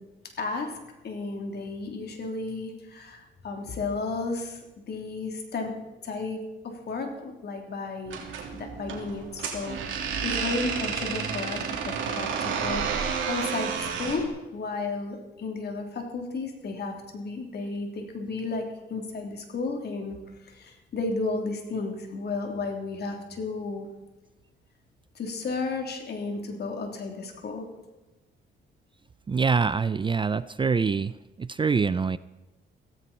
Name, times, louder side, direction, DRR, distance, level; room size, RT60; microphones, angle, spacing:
voice 1, 0.4-0.8 1.0-4.6 4.9-5.7 6.0-6.4 6.6-8.3 8.5-23.9 25.1-27.7, left 3 dB, 55° left, 3 dB, 3.4 m, -33 dB
sound 1, 8.1-14.3, right 6 dB, 75° right, 3.0 m, -31 dB
voice 2, 29.3-31.1 31.4-32.2, right 5 dB, 25° right, 16 dB, 0.4 m, -25 dB
16.0 x 15.0 x 4.4 m, 1.1 s
cardioid pair, 90°, 20 cm